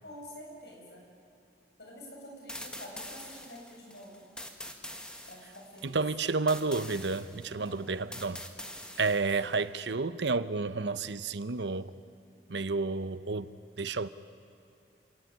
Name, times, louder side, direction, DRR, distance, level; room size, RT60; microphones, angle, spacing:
voice 1, 0.0-1.0 1.8-4.3 5.3-6.0 7.5-7.9 8.9-9.3, equal, 70° left, -1 dB, 7.9 m, -48 dB
sound 1, 2.5-9.6, left 1 dB, 5° left, 1.7 m, -45 dB
voice 2, 5.8-8.4 9.0-11.9 12.5-14.1, right 3 dB, 85° right, 14 dB, 0.9 m, -31 dB
28.0 x 17.5 x 9.9 m, 2.7 s
head